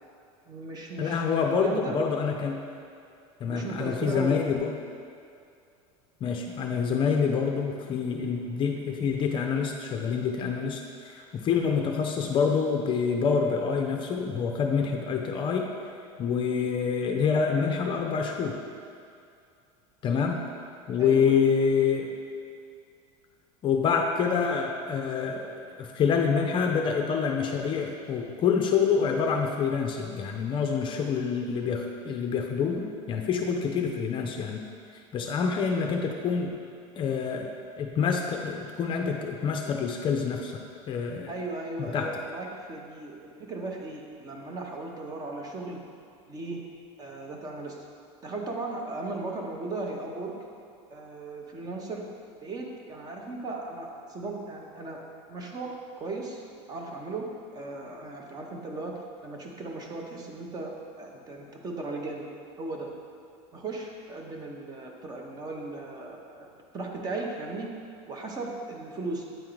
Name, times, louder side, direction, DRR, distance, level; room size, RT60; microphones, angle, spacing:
voice 1, 0.5-2.0 3.5-4.4 21.0-21.4 41.3-45.8 46.3-46.6 47.0-47.8 48.2-50.3 50.9-52.0 52.4-55.0 55.3-56.4 56.7-57.3 57.5-62.3 62.6-62.9 63.5-66.4 66.7-67.7 68.1-69.3, right 2 dB, 25° right, 0 dB, 0.8 m, -37 dB
voice 2, 1.0-2.6 3.4-4.7 6.2-15.7 16.2-18.6 20.0-20.4 20.9-22.1 23.6-34.6 35.1-36.5 37.0-37.5 37.8-40.6 40.9-41.3 41.9-42.1, left 6 dB, 35° left, 2 dB, 0.5 m, -27 dB
8.9 x 3.7 x 3.1 m, 2.4 s
supercardioid pair, 135°, 15 cm